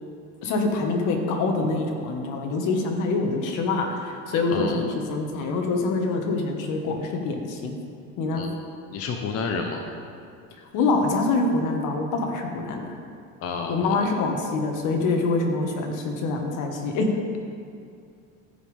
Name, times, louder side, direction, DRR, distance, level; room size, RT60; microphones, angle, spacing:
voice 1, 0.4-7.8 8.2-8.4 10.7-12.9 13.7-17.1, left 3 dB, 65° left, 2 dB, 1.5 m, -25 dB
voice 2, 4.5-4.8 8.3-8.6 8.9-9.8 13.4-14.1, left 5 dB, 45° left, 3 dB, 0.9 m, -30 dB
15.0 x 5.3 x 3.5 m, 2.4 s
supercardioid pair, 105°, 34 cm